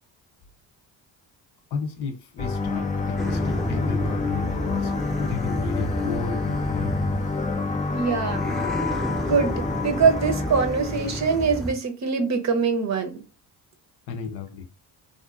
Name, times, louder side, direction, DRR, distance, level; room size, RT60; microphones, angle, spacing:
voice 1, 1.7-6.9 14.1-14.6, left 5 dB, 60° left, 0.7 m, -33 dB
sound 1, 2.4-11.4, left 3 dB, 20° left, 0.4 m, -28 dB
sound 2, 3.2-7.8 8.3-11.7, equal, ahead, 0.8 m, -32 dB
voice 2, 7.9-8.6 9.3-13.2, right 5 dB, 40° right, 0.7 m, -23 dB
2.5 x 2.4 x 2.4 m
supercardioid pair, 60°, 45 cm